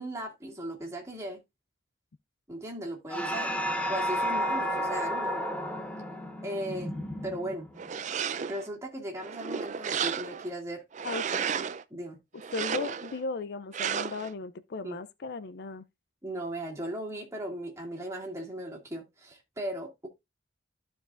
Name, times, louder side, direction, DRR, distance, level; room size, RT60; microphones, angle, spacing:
voice 1, 0.0-1.4 2.5-5.5 6.4-7.7 8.5-10.8 11.9-12.2 14.8-15.0 16.2-20.1, right 1 dB, 15° right, 2.1 m, -37 dB
sound 1, 3.1-7.9, equal, 5° left, 0.8 m, -32 dB
sound 2, 7.8-8.7 9.2-10.5 10.9-11.8 12.4-13.2 13.7-14.3, right 7 dB, 40° right, 0.4 m, -33 dB
voice 2, 11.0-11.5 12.5-15.9, left 4 dB, 55° left, 0.4 m, -36 dB
14.0 x 4.7 x 2.5 m
head